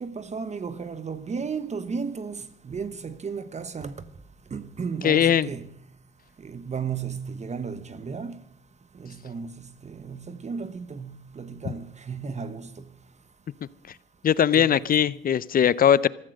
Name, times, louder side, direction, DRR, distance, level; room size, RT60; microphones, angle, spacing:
voice 1, 0.0-4.0 4.5-5.7 6.4-8.4 9.0-12.7 14.5-14.8, right 5 dB, 35° right, 1.1 m, -34 dB
voice 2, 5.0-5.5 14.2-16.1, left 9 dB, 45° left, 0.6 m, -20 dB
14.5 x 14.0 x 6.4 m
cardioid pair, 90°, 20 cm